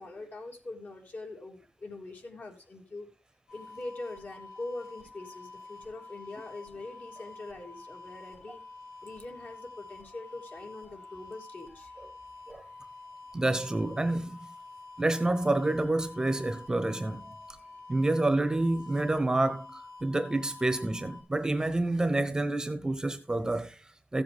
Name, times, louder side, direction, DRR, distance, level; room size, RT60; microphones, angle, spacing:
voice 1, 0.0-3.1 3.5-8.6 9.0-11.9, left 2 dB, 45° left, 3.2 m, -43 dB
sound 1, 3.5-21.2, left 3 dB, 80° left, 6.0 m, -48 dB
voice 2, 13.3-14.4 15.0-17.3 17.9-24.2, right 2 dB, 15° right, 0.9 m, -28 dB
15.5 x 7.8 x 3.5 m
wide cardioid pair, 150°, 4 cm